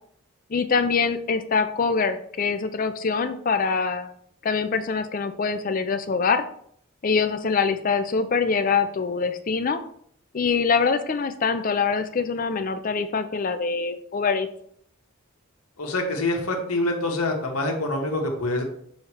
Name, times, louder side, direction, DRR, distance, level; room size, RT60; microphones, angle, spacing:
voice 1, 0.5-4.1 4.4-6.4 7.0-9.8 10.3-14.5, left 5 dB, 40° left, 9 dB, 0.4 m, -24 dB
voice 2, 15.8-18.6, left 2 dB, 85° left, 2 dB, 1.3 m, -25 dB
6.3 x 3.2 x 4.9 m, 0.65 s
head